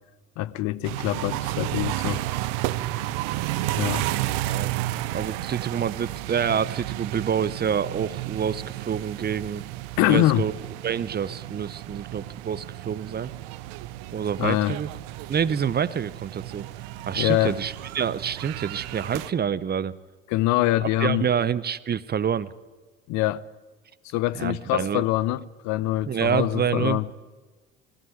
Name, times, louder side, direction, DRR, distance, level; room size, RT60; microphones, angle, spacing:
voice 1, 0.4-2.2 3.8-4.0 10.0-10.5 14.4-14.8 17.2-17.6 20.3-21.3 23.1-23.4 24.1-27.1, left 16 dB, 65° left, 0.8 m, -24 dB
sound 1, 0.8-19.3, right 16 dB, 70° right, 0.9 m, -32 dB
voice 2, 4.1-4.7 5.1-9.6 10.1-10.5 10.8-13.3 14.1-14.9 15.3-16.7 17.1-20.0 20.8-22.5 24.3-25.0 26.1-27.0, right 8 dB, 30° right, 0.9 m, -27 dB
20.0 x 16.0 x 9.6 m
hypercardioid pair, 60°, 31 cm